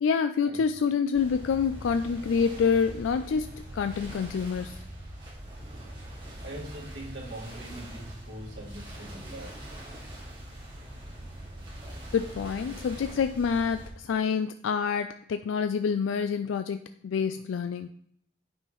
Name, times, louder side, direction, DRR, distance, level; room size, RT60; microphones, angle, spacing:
voice 1, 0.0-4.8 12.1-17.9, left 6 dB, 85° left, 10 dB, 0.3 m, -27 dB
sound 1, 1.1-13.9, right 1 dB, 25° right, 1.9 m, -43 dB
voice 2, 6.4-9.6, right 1 dB, 65° right, -3 dB, 1.9 m, -42 dB
9.7 x 5.5 x 3.1 m, 0.68 s
head